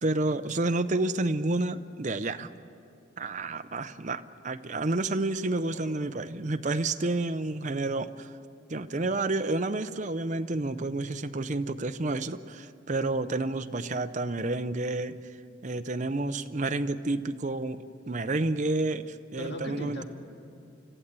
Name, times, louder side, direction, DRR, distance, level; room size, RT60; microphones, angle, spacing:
voice 1, 0.0-2.5 3.2-8.3 8.7-15.2 15.6-20.0, right 2 dB, 35° right, 10 dB, 0.6 m, -30 dB
voice 2, 5.6-6.1 9.0-9.1 19.4-20.0, equal, 55° left, 3 dB, 2.0 m, -39 dB
26.0 x 14.5 x 8.2 m, 2.5 s
head